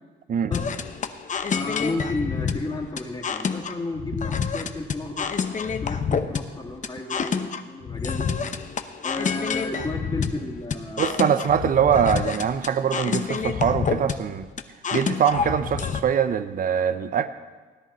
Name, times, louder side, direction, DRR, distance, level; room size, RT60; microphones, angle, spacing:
sound 1, 0.5-16.0, left 6 dB, 40° left, 0.8 m, -28 dB
voice 1, 1.5-8.3 9.0-11.5, left 2 dB, 20° left, 0 dB, 2.2 m, -33 dB
voice 2, 11.0-14.5 14.9-17.3, right 8 dB, 45° right, 12 dB, 0.6 m, -23 dB
17.0 x 10.5 x 4.3 m, 1.4 s
cardioid pair, 90°, 20 cm